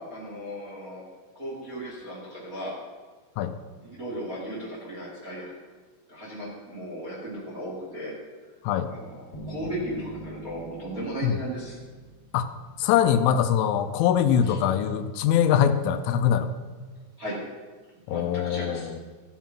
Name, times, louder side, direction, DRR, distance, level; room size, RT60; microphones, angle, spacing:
voice 1, 0.1-1.0 1.3-2.7 3.8-5.5 6.1-8.1 8.9-11.8 14.4-14.6 17.2-17.3 18.1-18.9, right 1 dB, 30° right, -5 dB, 1.7 m, -36 dB
sound 1, 9.3-12.7, right 2 dB, 25° left, 3.1 m, -43 dB
voice 2, 12.8-16.5 18.1-18.9, left 9 dB, 85° left, 9 dB, 3.2 m, -23 dB
15.5 x 7.5 x 5.8 m, 1.4 s
omnidirectional pair, 5.6 m